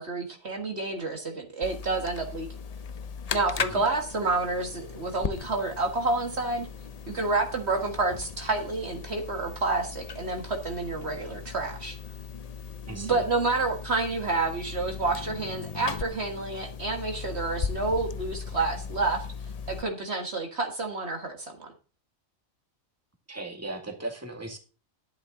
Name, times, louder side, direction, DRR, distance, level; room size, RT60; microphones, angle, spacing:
voice 1, 0.0-2.5 3.3-6.7 7.1-12.0 12.9-19.3 19.7-21.7, right 3 dB, 55° right, 3 dB, 2.0 m, -29 dB
sound 1, 1.6-19.8, left 6 dB, 40° left, 0.6 m, -38 dB
voice 2, 12.9-13.2 23.3-24.6, right 2 dB, 10° right, 4 dB, 2.1 m, -37 dB
11.5 x 9.3 x 3.8 m, 0.34 s
omnidirectional pair, 1.3 m